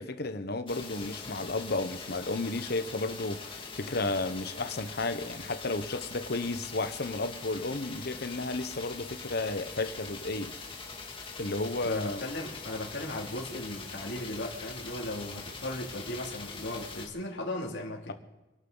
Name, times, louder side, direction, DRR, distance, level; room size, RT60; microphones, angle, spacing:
voice 1, 0.0-10.5 11.4-12.2, left 2 dB, 60° left, 1.1 m, -33 dB
sound 1, 0.7-17.1, left 4 dB, 30° left, 2.1 m, -43 dB
voice 2, 11.8-18.1, left 1 dB, 75° left, 2.8 m, -37 dB
26.0 x 12.0 x 4.0 m
head